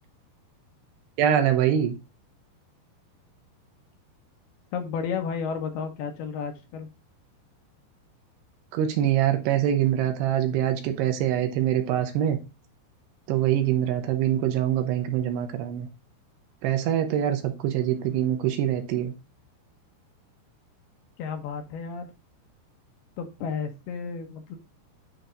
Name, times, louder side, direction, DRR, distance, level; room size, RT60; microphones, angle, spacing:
voice 1, 1.2-2.0 8.7-12.4 13.3-15.9 16.6-19.1, right 10 dB, 75° right, 2.7 m, -24 dB
voice 2, 4.7-6.9 21.2-22.1 23.2-24.6, left 6 dB, 70° left, 2.8 m, -32 dB
10.0 x 3.5 x 3.8 m
omnidirectional pair, 5.1 m